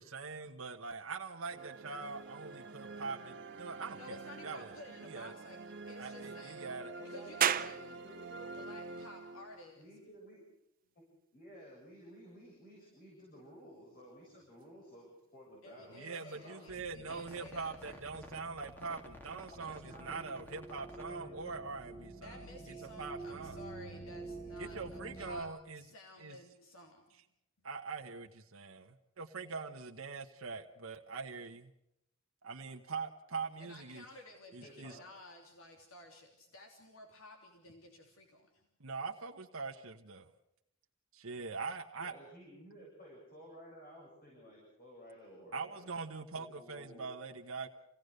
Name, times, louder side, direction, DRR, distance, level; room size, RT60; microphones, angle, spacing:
voice 1, 0.0-4.7 5.0-5.3 6.0-6.9 15.9-23.6 24.6-25.9 26.2-26.4 27.1-27.2 27.6-31.7 32.4-34.0 34.5-35.0 38.8-40.3 41.1-42.1 45.5-47.7, right 4 dB, 80° right, 2 dB, 1.2 m, -43 dB
sound 1, 1.5-9.8, right 3 dB, 60° right, 1.5 m, -48 dB
voice 2, 3.9-6.6 7.0-7.8 8.5-9.9 15.6-18.0 22.2-25.5 25.8-27.0 33.6-38.5, left 2 dB, 80° left, 2 dB, 3.1 m, -54 dB
voice 3, 7.0-8.8 9.8-10.4 11.3-16.7 16.9-17.5 19.5-20.4 20.7-21.4 34.5-35.0 42.0-45.9 46.3-47.1, equal, 45° left, -3 dB, 7.8 m, -54 dB
sound 2, 7.4-20.5, right 9 dB, 45° right, 0.7 m, -43 dB
sound 3, 16.7-25.4, right 2 dB, 10° left, 2.1 m, -49 dB
27.5 x 18.0 x 6.6 m, 0.84 s
head